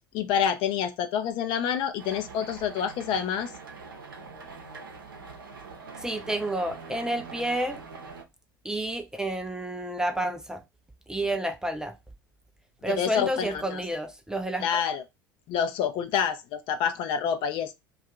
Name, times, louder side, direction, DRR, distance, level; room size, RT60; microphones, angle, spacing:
voice 1, 0.1-3.5 12.9-13.8 14.6-15.0 15.5-17.7, left 8 dB, 45° left, 0.5 m, -27 dB
sound 1, 2.0-8.2, right 4 dB, 75° right, 0.7 m, -43 dB
voice 2, 6.0-7.8 8.6-10.6 11.1-12.0 12.8-14.8, right 1 dB, 5° right, 0.5 m, -30 dB
2.7 x 2.4 x 3.4 m
figure-of-eight pair, 75°, 11 cm